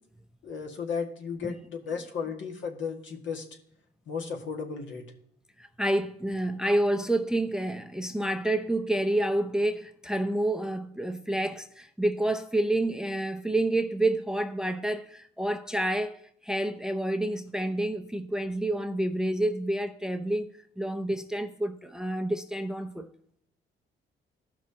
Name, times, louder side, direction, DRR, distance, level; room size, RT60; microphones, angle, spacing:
voice 1, 0.4-3.4 4.1-5.0, left 5 dB, 70° left, 1.8 m, -34 dB
voice 2, 5.6-23.1, right 1 dB, 5° right, 0.6 m, -29 dB
15.0 x 5.9 x 2.9 m
cardioid pair, 90°, 20 cm